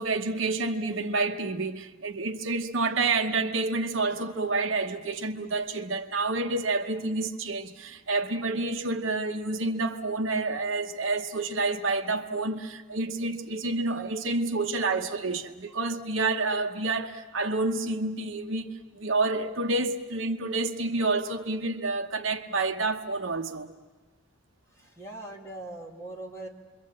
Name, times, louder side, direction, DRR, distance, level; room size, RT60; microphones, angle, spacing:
voice 1, 0.0-23.7, right 3 dB, 60° right, 1.0 m, -29 dB
voice 2, 24.7-26.5, right 1 dB, 15° left, 2.5 m, -41 dB
28.0 x 23.5 x 7.5 m
head